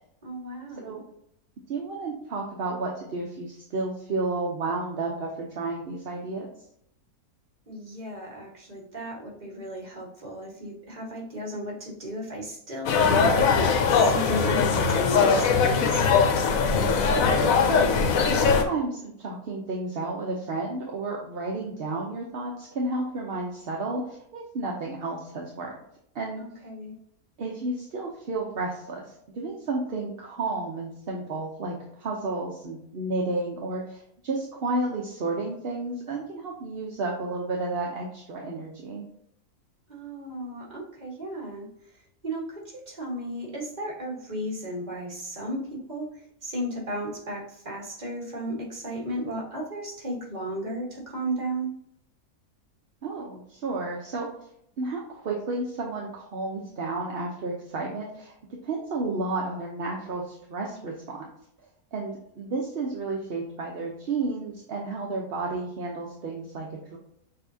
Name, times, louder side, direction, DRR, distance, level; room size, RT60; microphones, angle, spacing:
voice 1, 0.2-1.0 7.7-16.1 26.4-26.9 39.9-41.7 42.2-51.7, right 1 dB, 30° right, -2 dB, 1.5 m, -35 dB
voice 2, 1.7-6.5 16.7-17.9 18.3-25.7 26.1-26.4 27.4-39.1 53.0-54.3 54.8-58.3 58.6-61.3 61.9-67.0, right 3 dB, 50° right, -1 dB, 0.8 m, -32 dB
sound 1, 12.9-18.6, left 5 dB, 70° left, 1.1 m, -21 dB
6.6 x 2.8 x 2.7 m, 0.72 s
omnidirectional pair, 1.5 m